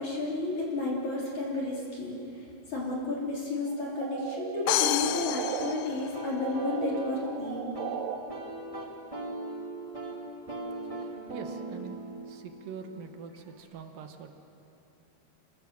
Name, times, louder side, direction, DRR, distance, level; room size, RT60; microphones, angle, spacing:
voice 1, 0.0-7.7, left 2 dB, 45° left, -4 dB, 4.1 m, -32 dB
sound 1, 3.7-5.7 6.1-8.2, right 9 dB, 90° right, 3.6 m, -37 dB
sound 2, 4.7-6.6, left 12 dB, 85° left, 2.2 m, -29 dB
sound 3, 5.0-13.6, right 1 dB, 15° right, 1.1 m, -40 dB
voice 2, 11.3-14.3, right 6 dB, 70° right, 6 dB, 2.3 m, -44 dB
28.5 x 20.5 x 7.5 m, 2.8 s
omnidirectional pair, 5.4 m